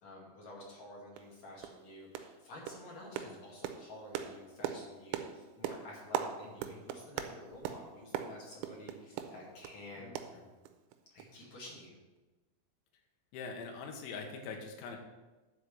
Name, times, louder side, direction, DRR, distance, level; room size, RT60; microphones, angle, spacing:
voice 1, 0.0-10.1 11.1-12.0, left 1 dB, 45° left, -3 dB, 2.9 m, -50 dB
sound 1, 0.6-0.7 1.2-1.3 1.6-1.8 2.1-2.4 2.7-9.8 10.2-10.9 11.2-11.3 11.7-11.8, right 9 dB, 80° right, 2.9 m, -41 dB
voice 2, 10.0-10.4 13.3-15.0, left 4 dB, 75° left, 2 dB, 3.5 m, -44 dB
11.0 x 5.1 x 6.9 m, 1.2 s
omnidirectional pair, 5.7 m